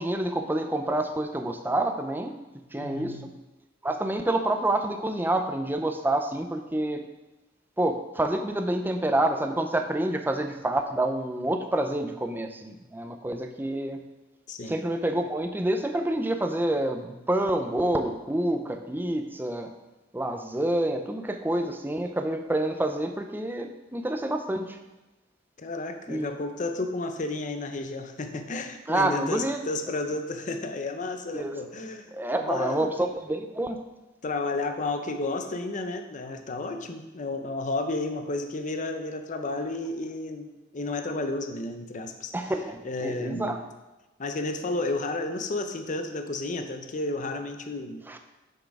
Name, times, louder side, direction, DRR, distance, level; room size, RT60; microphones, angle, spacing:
voice 1, 0.0-2.4 2.7-3.3 3.8-7.0 7.8-14.0 14.7-19.7 20.1-24.8 26.1-26.3 28.9-29.6 31.3-31.5 32.1-33.8 42.3-43.6 48.1-48.2, right 1 dB, 10° right, 5 dB, 0.5 m, -28 dB
voice 2, 2.7-3.3 14.5-14.8 25.6-32.1 32.4-32.9 34.2-40.5 40.7-42.3 42.8-43.6 44.2-48.0, left 2 dB, 40° left, 6 dB, 0.6 m, -32 dB
6.6 x 6.3 x 4.8 m, 1.1 s
head